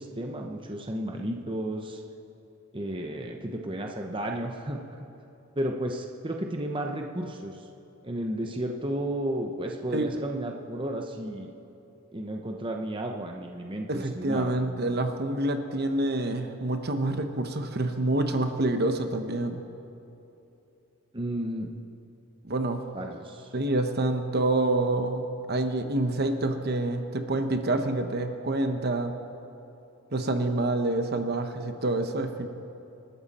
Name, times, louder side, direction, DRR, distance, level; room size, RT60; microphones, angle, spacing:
voice 1, 0.0-2.0 2.7-4.8 5.6-7.5 8.0-11.5 12.1-14.5 21.1-21.7 22.9-23.5, right 1 dB, 25° right, 2 dB, 0.9 m, -33 dB
voice 2, 13.9-19.6 22.5-22.8 23.5-29.1 30.1-32.5, right 2 dB, 50° right, 7 dB, 1.0 m, -27 dB
26.5 x 12.5 x 4.3 m, 2.9 s
head